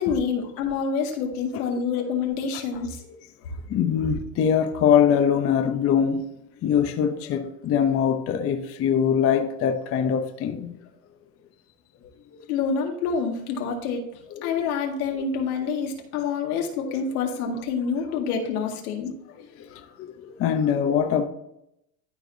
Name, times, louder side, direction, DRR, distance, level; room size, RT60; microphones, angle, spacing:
voice 1, 0.0-3.0 12.5-14.0 14.4-19.1, left 5 dB, 90° left, 2.0 m, -27 dB
voice 2, 3.7-6.3 6.6-10.8 14.3-14.6 19.7-19.8 20.4-21.2, left 8 dB, 30° left, 0.7 m, -22 dB
13.0 x 4.6 x 2.7 m
supercardioid pair, 135°, 43 cm